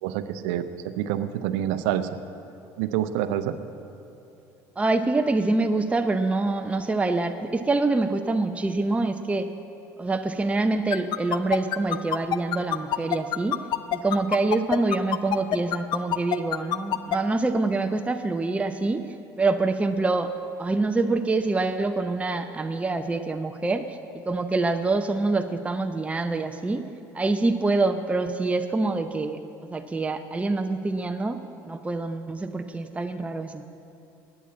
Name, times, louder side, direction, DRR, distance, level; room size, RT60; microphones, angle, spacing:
voice 1, 0.0-2.2 2.8-3.6, right 11 dB, 80° right, 11 dB, 0.6 m, -27 dB
voice 2, 4.8-9.5 10.0-13.6 13.9-19.0 19.4-20.3 20.6-24.0 24.3-26.8 27.1-29.4 29.7-31.4 31.6-33.6, right 3 dB, 15° right, 7 dB, 0.6 m, -25 dB
sound 1, 10.9-17.2, left 12 dB, 60° left, 0.6 m, -25 dB
11.0 x 8.7 x 8.4 m, 2.9 s
supercardioid pair, 80°, 9 cm